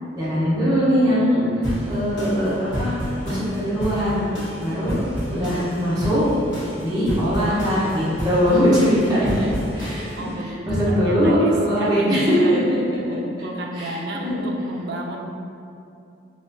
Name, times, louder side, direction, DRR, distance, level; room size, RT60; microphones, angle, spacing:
voice 1, 0.1-2.9 3.2-4.3 4.6-5.0 5.3-6.2 6.8-9.5 9.7-10.1 10.7-12.6 13.7-14.5, equal, 20° right, -11 dB, 1.0 m, -21 dB
sound 1, 1.6-10.3, equal, 85° left, 1.3 m, -31 dB
voice 2, 4.5-5.4 10.2-12.7 13.0-15.3, right 1 dB, 60° right, 1 dB, 0.3 m, -34 dB
4.0 x 2.5 x 2.7 m, 2.6 s
head